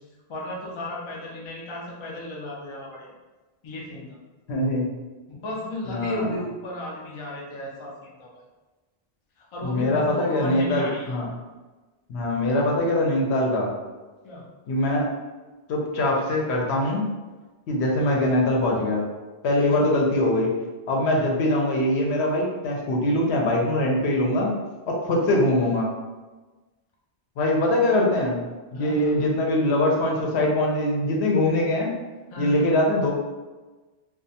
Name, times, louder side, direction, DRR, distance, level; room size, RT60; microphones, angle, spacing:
voice 1, 0.3-3.1 3.6-4.2 5.3-8.4 9.4-11.1 14.2-14.5 19.6-19.9 21.0-21.2 27.8-28.0 28.7-29.3 32.3-32.7, left 1 dB, 45° left, -3 dB, 0.4 m, -35 dB
voice 2, 4.5-4.9 5.9-6.3 9.6-11.3 12.1-13.7 14.7-15.1 15.7-17.1 17.7-19.0 19.4-20.5 20.9-24.5 24.9-25.9 27.4-28.4 28.7-31.9 32.4-33.1, left 1 dB, 85° left, -1 dB, 0.9 m, -22 dB
2.3 x 2.1 x 2.7 m, 1.2 s
omnidirectional pair, 1.1 m